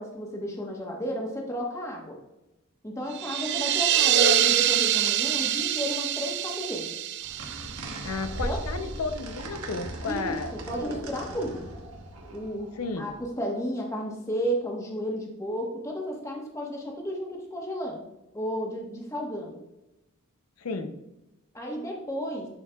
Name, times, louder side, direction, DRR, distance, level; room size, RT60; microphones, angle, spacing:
voice 1, 0.0-2.2 2.8-6.9 8.4-8.6 10.1-11.7 12.3-12.7 13.0-18.0 18.3-19.6 21.5-22.5, equal, 15° left, 0 dB, 1.2 m, -32 dB
sound 1, 3.1-8.7, right 10 dB, 50° right, 0.3 m, -25 dB
sound 2, 7.2-13.3, right 1 dB, 90° right, 1.2 m, -38 dB
voice 2, 8.0-10.5 12.8-13.1 20.6-20.9, left 3 dB, 90° left, 8 dB, 0.6 m, -32 dB
9.9 x 4.6 x 2.3 m, 0.93 s
head